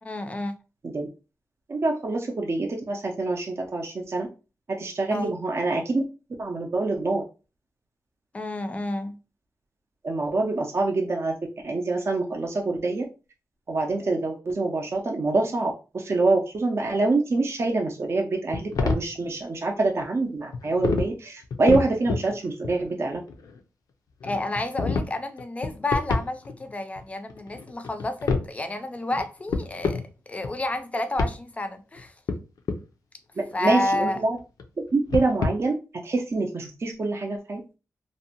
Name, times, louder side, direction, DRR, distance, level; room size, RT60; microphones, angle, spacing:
voice 1, 0.0-0.5 5.1-5.3 8.3-9.2 24.2-30.0 30.3-32.1 33.5-34.2, left 2 dB, 20° left, 0.4 m, -30 dB
voice 2, 1.7-4.3 4.8-6.0 6.4-7.2 10.0-11.4 11.6-13.0 13.7-23.2 33.4-34.4 34.9-35.7 36.0-37.6, right 3 dB, 45° right, 0.4 m, -25 dB
sound 1, 18.5-19.1 20.0-20.1 20.5-21.1 21.4-22.3 22.6-23.6 24.2-25.1 25.4-26.7 27.0-27.1 27.3-28.5 29.1-29.2 29.5-30.1 30.4-30.7 31.2-31.3 32.0-32.8 33.5-34.6 34.9-35.5, left 4 dB, 85° left, 0.4 m, -28 dB
2.6 x 2.1 x 2.7 m
wide cardioid pair, 85°, 6 cm